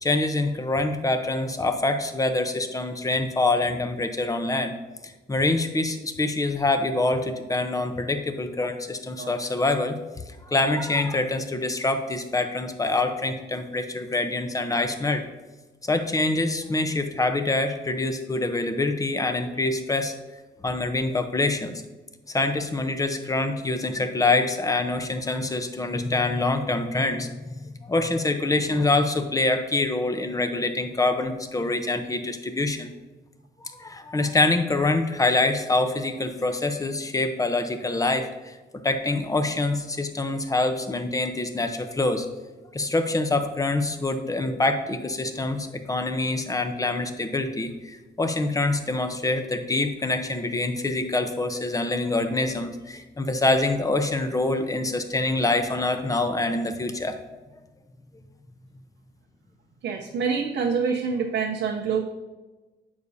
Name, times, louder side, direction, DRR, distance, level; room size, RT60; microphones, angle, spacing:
voice 1, 0.0-4.7 5.3-10.0 10.5-15.3 15.8-20.1 20.6-21.8 22.3-32.9 33.6-38.6 38.8-42.3 42.7-57.2, left 2 dB, 20° left, 7 dB, 0.8 m, -25 dB
voice 2, 59.8-62.0, right 5 dB, 80° right, 0 dB, 0.8 m, -26 dB
9.6 x 6.9 x 2.8 m, 1.2 s
cardioid pair, 95°, 19 cm